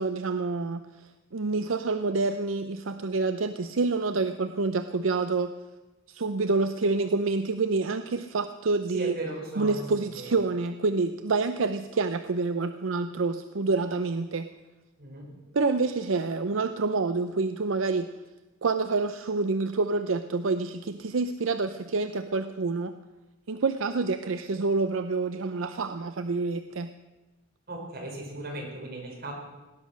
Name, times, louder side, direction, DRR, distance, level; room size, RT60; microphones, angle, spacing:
voice 1, 0.0-5.5 6.1-9.2 9.6-14.5 15.5-18.1 18.6-22.9 23.5-26.9, right 3 dB, 75° right, 9 dB, 0.6 m, -27 dB
voice 2, 8.9-9.9 15.0-15.3 27.7-29.3, right 1 dB, 50° right, -1 dB, 4.8 m, -36 dB
18.0 x 10.5 x 6.3 m, 1.1 s
head